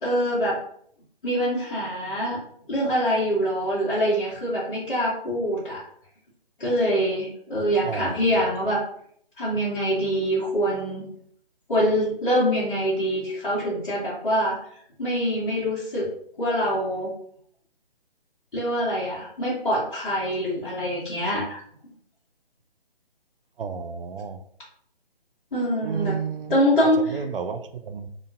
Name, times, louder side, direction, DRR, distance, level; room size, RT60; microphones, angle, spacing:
voice 1, 0.0-0.6 1.2-2.4 2.7-5.8 6.6-8.8 9.4-11.1 11.7-14.6 15.0-16.1 16.4-17.1 18.5-21.6 25.5-26.2 26.5-27.0, equal, 55° left, -8 dB, 1.0 m, -24 dB
voice 2, 23.6-24.4 25.8-26.5 26.8-28.1, right 5 dB, 65° right, 8 dB, 0.4 m, -31 dB
2.9 x 2.4 x 2.4 m, 0.65 s
figure-of-eight pair, 140°, 30 cm